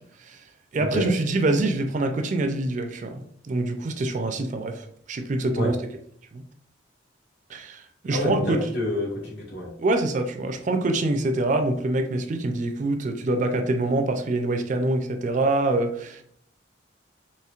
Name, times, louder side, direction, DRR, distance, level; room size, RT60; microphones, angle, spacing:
voice 1, 0.7-5.8 6.3-6.4 7.5-8.6 9.8-16.2, right 2 dB, 40° right, 6 dB, 0.3 m, -25 dB
voice 2, 8.1-9.7, left 1 dB, 60° left, -3 dB, 1.3 m, -27 dB
4.3 x 3.0 x 2.4 m, 0.65 s
head